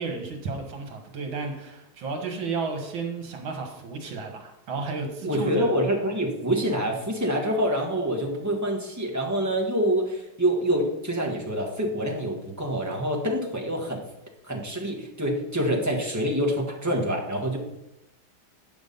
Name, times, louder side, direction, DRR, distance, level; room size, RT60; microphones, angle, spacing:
voice 1, 0.0-5.7, right 4 dB, 70° right, 3 dB, 2.2 m, -32 dB
voice 2, 5.2-14.0 14.4-17.6, equal, 10° right, -1 dB, 1.2 m, -26 dB
9.2 x 6.2 x 5.4 m, 0.87 s
omnidirectional pair, 2.3 m